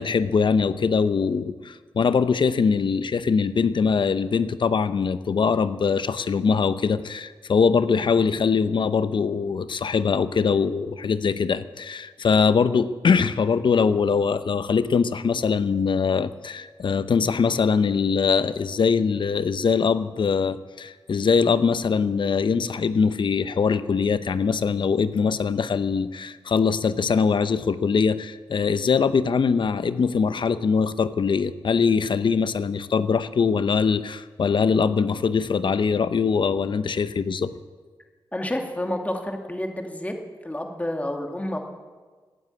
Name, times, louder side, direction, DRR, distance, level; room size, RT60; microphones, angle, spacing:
voice 1, 0.0-37.5, left 5 dB, 65° left, 13 dB, 0.8 m, -22 dB
voice 2, 38.3-40.1 40.4-41.6, left 1 dB, 15° left, 3 dB, 2.4 m, -29 dB
16.0 x 9.7 x 8.5 m, 1.4 s
cardioid pair, 50°, 9 cm